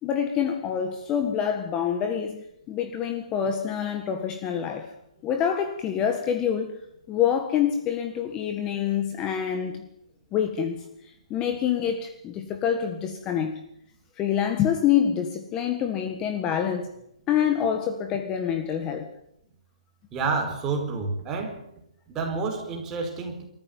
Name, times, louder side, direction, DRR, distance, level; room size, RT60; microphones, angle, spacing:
voice 1, 0.0-4.9 5.2-6.8 7.1-9.9 10.3-13.6 14.2-16.9 17.3-19.1, left 8 dB, 20° left, 1.6 m, -26 dB
voice 2, 20.1-21.6 22.1-23.4, right 4 dB, 15° right, 4.6 m, -29 dB
26.0 x 14.0 x 9.4 m
hypercardioid pair, 160°, 4 cm